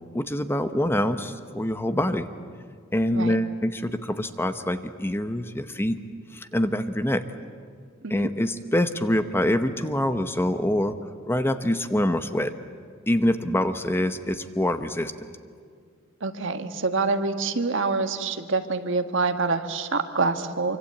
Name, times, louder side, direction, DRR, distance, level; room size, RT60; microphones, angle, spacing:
voice 1, 0.1-2.3 2.9-6.0 6.3-7.2 8.1-11.0 11.3-12.5 13.1-15.1, left 1 dB, 10° left, 9 dB, 0.9 m, -25 dB
voice 2, 16.2-20.8, right 3 dB, 65° right, 8 dB, 1.5 m, -26 dB
26.0 x 25.0 x 8.6 m, 2.1 s
head